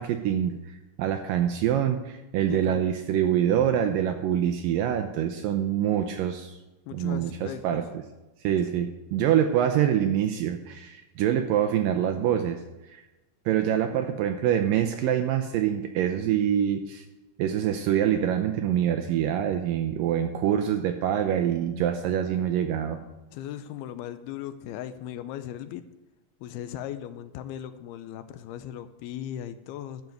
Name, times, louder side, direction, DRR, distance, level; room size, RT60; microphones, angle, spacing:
voice 1, 0.0-6.6 6.9-7.9 8.4-13.0 13.5-17.1 17.4-23.0, right 10 dB, 80° right, 7 dB, 2.0 m, -25 dB
voice 2, 2.5-2.9 6.9-7.8 23.3-25.9 26.4-30.0, left 11 dB, 80° left, 12 dB, 2.5 m, -37 dB
12.0 x 5.4 x 7.9 m, 1.0 s
omnidirectional pair, 4.6 m